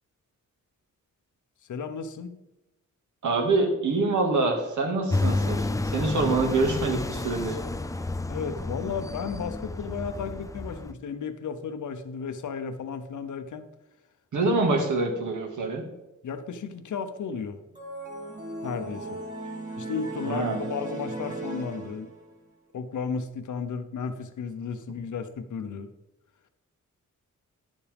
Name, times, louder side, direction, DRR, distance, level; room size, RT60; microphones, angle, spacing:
voice 1, 1.7-2.3 8.3-13.6 16.2-17.6 18.6-19.2 19.8-22.1 22.7-25.9, left 6 dB, 70° left, 9 dB, 0.9 m, -34 dB
voice 2, 3.2-5.6 5.9-7.6 14.3-15.8 20.2-20.6, right 3 dB, 75° right, 1 dB, 1.9 m, -25 dB
sound 1, 5.1-10.9, left 2 dB, 10° left, 0.3 m, -30 dB
sound 2, 17.8-22.4, right 2 dB, 25° right, 3.0 m, -37 dB
10.5 x 7.3 x 3.5 m, 0.97 s
wide cardioid pair, 115°, 31 cm